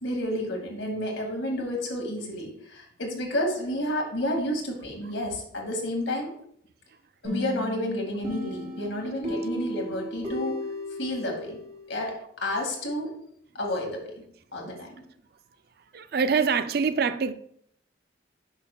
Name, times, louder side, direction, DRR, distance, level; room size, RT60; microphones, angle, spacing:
voice 1, 0.0-6.3 7.2-10.6 11.0-11.6 11.9-13.1 13.5-14.2 14.5-15.0, left 1 dB, 80° left, 2.0 m, -30 dB
sound 1, 7.2-11.9, left 1 dB, 35° right, 3.0 m, -35 dB
voice 2, 15.9-17.3, right 5 dB, 55° right, 0.4 m, -24 dB
10.0 x 5.9 x 2.3 m
head